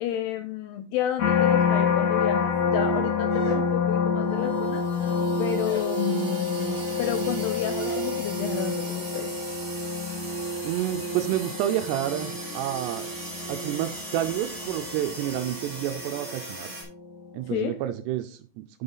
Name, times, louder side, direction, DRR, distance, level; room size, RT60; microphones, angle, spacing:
voice 1, 0.0-9.3 17.5-17.8, left 10 dB, 85° left, 9 dB, 2.3 m, -31 dB
sound 1, 1.2-16.4 16.9-17.3, left 5 dB, 50° left, 2.8 m, -28 dB
sound 2, 3.3-4.0 4.8-5.3 5.6-6.0 7.8-8.1, equal, 20° left, 3.7 m, -41 dB
sound 3, 4.4-16.8, right 1 dB, 20° right, 2.9 m, -39 dB
voice 2, 10.6-13.1 13.5-16.7 17.3-18.8, right 12 dB, 85° right, 8 dB, 2.5 m, -29 dB
7.8 x 6.8 x 3.9 m, 0.40 s
omnidirectional pair, 5.2 m